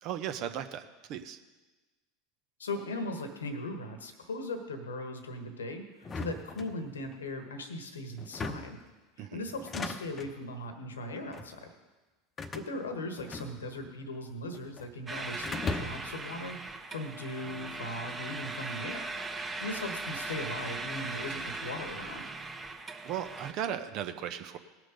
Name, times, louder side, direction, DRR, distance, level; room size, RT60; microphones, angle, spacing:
voice 1, 0.0-1.4 9.2-9.4 23.0-24.6, right 9 dB, 50° right, 9 dB, 1.0 m, -36 dB
voice 2, 2.6-8.8 9.2-11.7 12.4-19.1 19.6-22.3, left 1 dB, 85° left, 7 dB, 1.3 m, -39 dB
sound 1, 6.0-7.2 8.2-8.9 9.5-10.4 11.2-11.5 12.4-13.9 14.2-14.9 15.4-16.2, left 3 dB, 30° left, 0.9 m, -39 dB
sound 2, 15.1-23.5, right 3 dB, 20° right, 1.2 m, -39 dB
18.5 x 6.3 x 5.2 m, 1.2 s
hypercardioid pair, 80°, 0 cm